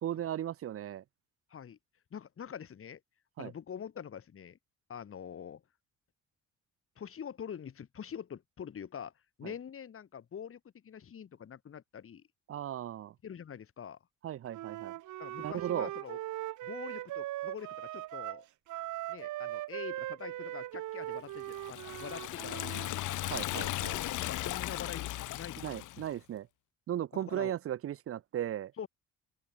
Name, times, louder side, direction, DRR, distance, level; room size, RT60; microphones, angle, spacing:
voice 1, 0.0-1.0 3.4-3.5 9.4-9.5 12.5-13.1 14.2-14.9 15.4-15.9 23.3-23.9 25.6-26.5 26.9-28.7, right 11 dB, 50° right, 0.5 m, -36 dB
voice 2, 2.1-3.0 3.4-4.6 4.9-5.6 7.0-9.1 9.4-12.2 13.2-14.0 15.2-16.2 16.6-18.5 19.1-23.2 23.9-25.0 25.3-25.9 27.1-27.5 28.8-28.9, left 8 dB, 45° left, 2.0 m, -45 dB
Wind instrument woodwind instrument, 14.5-22.9, right 15 dB, 80° right, 1.0 m, -40 dB
Liquid, 21.5-26.1, left 15 dB, 80° left, 1.3 m, -37 dB
open air
cardioid pair, 90°, 30 cm